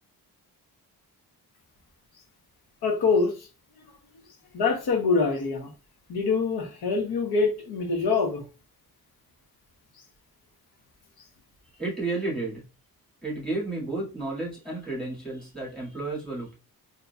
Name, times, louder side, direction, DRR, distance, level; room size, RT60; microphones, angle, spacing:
voice 1, 2.8-3.5 4.5-5.7 6.1-8.4, left 4 dB, 85° left, 1.0 m, -25 dB
voice 2, 11.6-12.6 13.2-16.5, right 2 dB, ahead, 1.8 m, -32 dB
3.8 x 2.8 x 2.3 m
wide cardioid pair, 115°, 37 cm